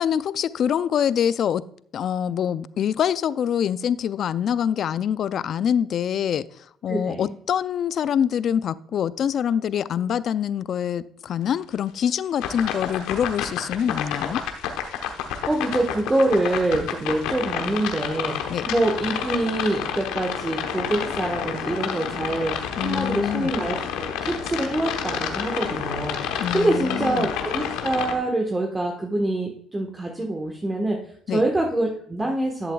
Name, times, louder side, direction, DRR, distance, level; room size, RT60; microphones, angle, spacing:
voice 1, 0.0-1.6 1.9-14.4 18.5-18.7 22.8-23.5 26.4-27.3 31.3-31.4, left 8 dB, 60° left, 0.4 m, -25 dB
voice 2, 6.9-7.3 15.5-31.0 31.3-32.7, right 1 dB, 20° right, 1.4 m, -25 dB
sound 1, 12.4-28.2, left 8 dB, 80° left, 1.0 m, -29 dB
11.0 x 8.0 x 2.3 m
supercardioid pair, 70°, 0 cm